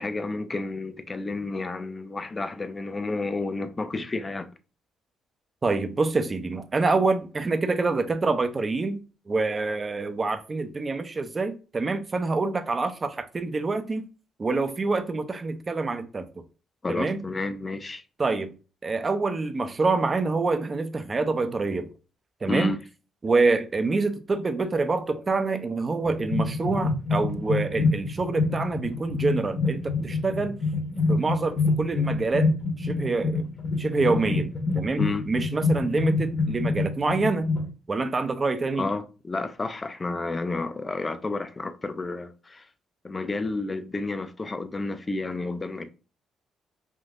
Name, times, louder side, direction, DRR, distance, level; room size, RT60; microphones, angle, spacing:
voice 1, 0.0-4.5 16.8-18.0 22.4-22.8 34.9-35.3 38.8-42.7 43.0-45.9, left 3 dB, 25° left, 0.4 m, -31 dB
voice 2, 5.6-9.0 9.3-14.1 14.4-16.3 16.9-17.2 18.2-18.5 18.8-21.9 22.4-22.7 23.2-30.6 31.1-32.5 32.8-33.5 33.8-35.0 35.3-37.5 37.9-38.9, right 3 dB, 30° right, 0.5 m, -26 dB
sound 1, 26.0-37.7, left 3 dB, 50° left, 1.0 m, -27 dB
3.5 x 2.6 x 2.4 m
cardioid pair, 90°, 0 cm